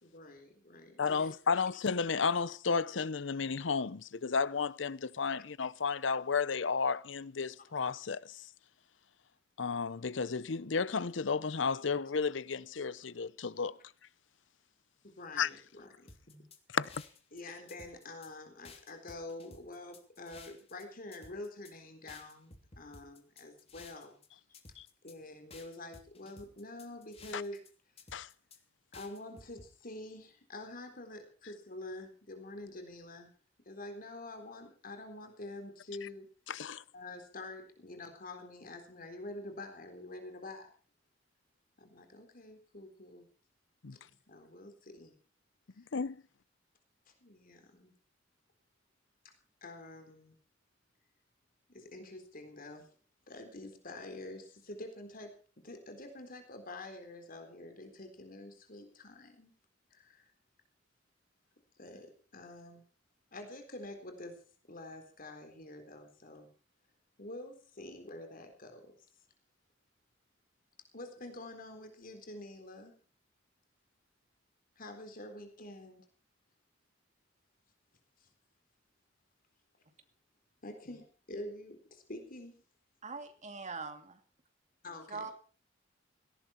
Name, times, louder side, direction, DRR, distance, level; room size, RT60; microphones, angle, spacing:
voice 1, 0.0-1.6 15.0-16.4 17.3-24.2 25.0-27.6 28.9-33.3 33.7-36.3 36.9-40.7 41.8-43.3 43.9-45.1 45.7-45.9 47.2-47.9 49.2-49.3 49.6-50.3 51.7-52.9 53.3-55.3 55.6-59.5 59.9-60.3 61.8-62.8 63.3-66.5 67.2-69.0 70.9-72.9 74.8-76.1 78.2-78.3 80.6-82.6 84.8-85.3, left 2 dB, 50° left, 3.9 m, -47 dB
voice 2, 1.0-8.4 9.6-13.8 15.4-15.5 16.7-16.9 24.8-24.9 27.3-27.4 28.1-28.3 36.5-36.8 43.8-44.0 45.9-46.2, left 5 dB, 70° left, 0.7 m, -33 dB
sound 1, 16.1-17.4 17.7-18.3 18.6-20.8 21.1-21.7 22.1-24.3 24.5-25.2 25.5-27.7 28.0-28.6 28.9-29.7, left 3 dB, 35° left, 2.9 m, -55 dB
voice 3, 83.0-84.2 85.1-85.3, right 4 dB, 40° right, 2.7 m, -42 dB
18.0 x 17.5 x 4.4 m
head